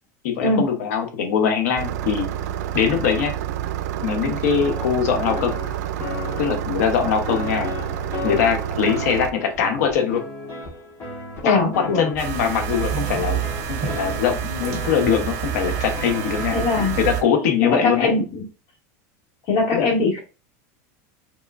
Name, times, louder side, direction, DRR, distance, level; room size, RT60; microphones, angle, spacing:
voice 1, 0.2-2.3 2.7-3.3 4.0-5.5 6.4-7.7 8.2-10.2 11.4-13.4 13.7-18.2 19.7-19.9, left 7 dB, 80° left, 6 dB, 1.2 m, -22 dB
Engine starting, 1.8-9.3, right 10 dB, 85° right, 0.5 m, -28 dB
sound 1, 4.6-16.6, left 2 dB, 35° left, 1.9 m, -35 dB
voice 2, 11.4-12.1 16.5-16.9 17.6-18.4 19.5-20.2, left 3 dB, 55° left, -3 dB, 2.6 m, -21 dB
sound 2, 12.2-17.2, right 8 dB, 50° right, 1.7 m, -28 dB
4.8 x 3.7 x 2.6 m, 0.33 s
supercardioid pair, 155°, 9 cm